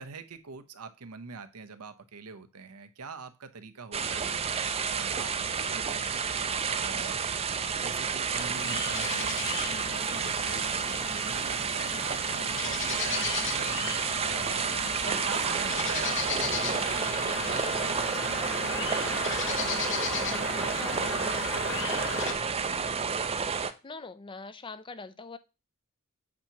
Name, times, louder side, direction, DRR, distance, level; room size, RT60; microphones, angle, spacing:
voice 1, 0.0-6.2 6.7-7.2 7.8-22.9, right 5 dB, 90° right, 9 dB, 0.8 m, -44 dB
sound 1, 3.9-23.7, right 6 dB, 30° right, 0.5 m, -30 dB
sound 2, 8.3-22.3, left 5 dB, 60° left, 1.0 m, -36 dB
voice 2, 14.7-15.2 20.8-21.1 22.8-22.9 23.8-25.4, left 3 dB, 20° left, 12 dB, 0.5 m, -44 dB
8.7 x 2.9 x 5.7 m, 0.28 s
head